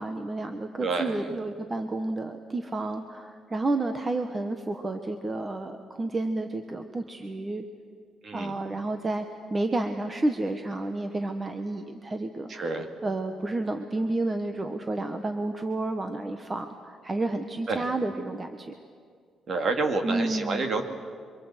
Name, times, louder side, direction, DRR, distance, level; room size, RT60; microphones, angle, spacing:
voice 1, 0.0-7.6 8.3-9.2 9.5-12.7 13.0-18.7 20.0-20.7, right 2 dB, 20° right, 6 dB, 1.2 m, -30 dB
voice 2, 0.8-1.2 8.2-8.6 12.5-12.8 17.7-17.8 19.5-20.8, right 3 dB, 40° right, 5 dB, 2.5 m, -28 dB
27.0 x 24.5 x 8.1 m, 2.1 s
cardioid pair, 150°, 0 cm